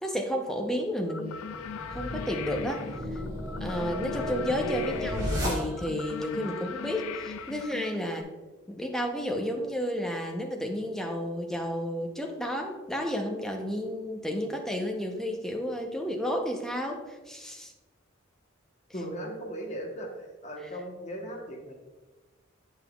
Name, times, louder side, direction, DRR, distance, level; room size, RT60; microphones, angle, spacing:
voice 1, 0.0-1.4 1.9-3.2 3.6-8.3 8.7-17.7 20.6-20.7, equal, ahead, 2 dB, 0.6 m, -32 dB
sound 1, 1.1-8.2, left 6 dB, 80° left, 0.4 m, -40 dB
sound 2, 1.5-6.1, equal, 20° right, 2.0 m, -33 dB
voice 2, 18.9-20.1 20.4-21.7, equal, 35° left, 1 dB, 1.0 m, -37 dB
7.9 x 5.5 x 2.3 m, 1.2 s
head